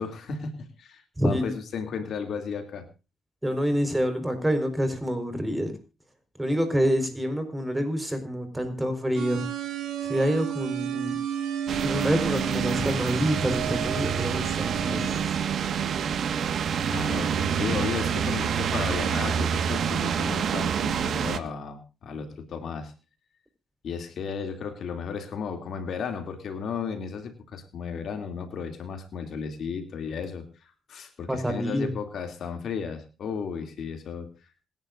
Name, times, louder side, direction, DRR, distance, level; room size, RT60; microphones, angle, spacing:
voice 1, 0.0-2.9 16.9-22.9 23.8-34.3, left 6 dB, 60° left, 6 dB, 2.8 m, -34 dB
voice 2, 1.2-1.5 3.4-5.8 6.4-9.4 10.1-11.2 11.8-15.4 31.3-31.9, equal, 10° right, 8 dB, 4.6 m, -27 dB
sound 1, 9.2-15.2, right 9 dB, 75° right, 4.0 m, -33 dB
sound 2, 11.7-21.4, right 7 dB, 60° right, 1.6 m, -27 dB
27.0 x 10.5 x 2.6 m, 0.32 s
cardioid pair, 90°, 0 cm